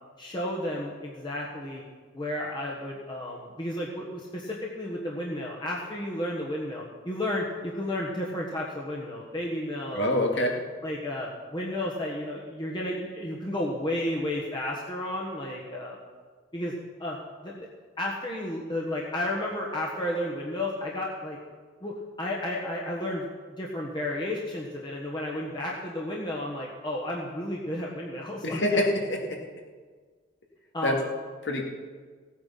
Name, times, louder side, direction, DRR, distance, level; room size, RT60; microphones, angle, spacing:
voice 1, 0.2-1.8 2.1-10.4 10.8-16.0 16.5-16.7 17.0-17.2 17.4-17.7 18.0-21.4 21.8-23.3 23.6-28.8 30.7-31.0, left 1 dB, 25° left, -3 dB, 1.4 m, -32 dB
voice 2, 9.9-10.6 28.4-29.4 30.8-31.0 31.4-31.6, left 1 dB, 75° left, 1 dB, 2.2 m, -25 dB
16.0 x 8.9 x 5.8 m, 1.5 s
head